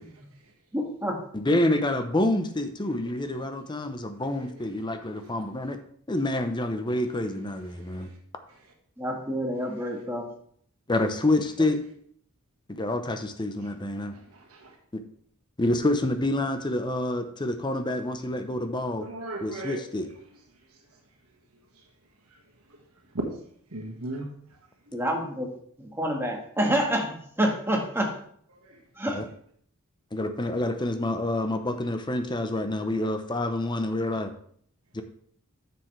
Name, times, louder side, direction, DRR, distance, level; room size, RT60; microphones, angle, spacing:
voice 1, 0.7-1.2 9.0-10.3 24.9-25.5 25.8-28.1 29.0-29.2, equal, 10° right, 0 dB, 1.5 m, -28 dB
voice 2, 1.3-5.8 6.1-8.1 10.9-11.8 12.7-14.2 14.9-15.0 15.6-19.1 19.4-20.1 29.1-29.2 30.1-34.3 34.9-35.0, left 1 dB, 20° left, 7 dB, 0.7 m, -27 dB
voice 3, 14.3-14.7 19.0-19.8 23.1-23.2 23.7-24.3 28.6-28.8, right 2 dB, 80° right, 1 dB, 1.5 m, -36 dB
9.5 x 6.9 x 3.2 m, 0.62 s
head